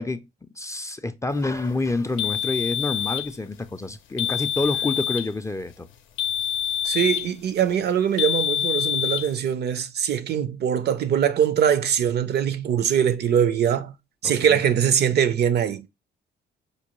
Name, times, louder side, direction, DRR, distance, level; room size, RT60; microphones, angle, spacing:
voice 1, 0.0-5.9 14.2-14.6, left 2 dB, 15° left, 0.4 m, -28 dB
sound 1, 2.2-3.3 4.2-5.3 6.2-7.3 8.2-9.3, left 10 dB, 80° left, 0.5 m, -26 dB
voice 2, 6.8-13.9 14.2-15.9, right 9 dB, 55° right, 0.5 m, -22 dB
5.2 x 2.2 x 2.9 m
cardioid pair, 90°, 20 cm